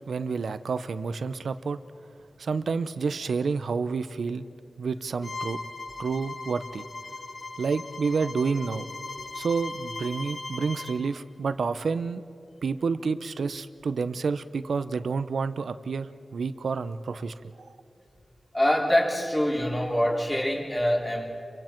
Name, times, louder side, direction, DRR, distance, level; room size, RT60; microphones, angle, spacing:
voice 1, 0.0-1.8 2.4-4.4 4.8-5.6 6.0-6.8 7.6-8.9 9.3-12.2 12.6-17.7, right 5 dB, 85° right, 12 dB, 0.7 m, -29 dB
Bowed string instrument, 5.2-11.0, left 3 dB, 55° left, 1.9 m, -38 dB
voice 2, 18.5-21.3, equal, 15° left, -2 dB, 3.7 m, -24 dB
30.0 x 24.0 x 4.6 m, 2.6 s
wide cardioid pair, 70°, 0 cm